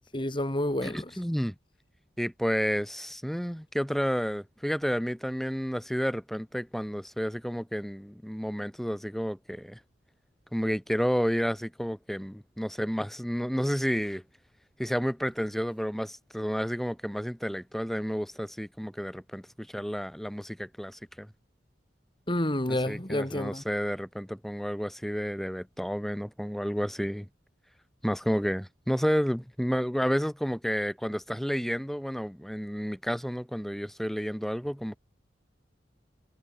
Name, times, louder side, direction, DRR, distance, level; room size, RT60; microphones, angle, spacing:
voice 1, 0.1-1.0 22.3-23.6, left 1 dB, 30° left, 3.7 m, -29 dB
voice 2, 0.8-1.6 2.2-9.8 10.5-14.2 14.8-21.3 22.7-27.3 28.0-35.0, equal, ahead, 3.5 m, -31 dB
head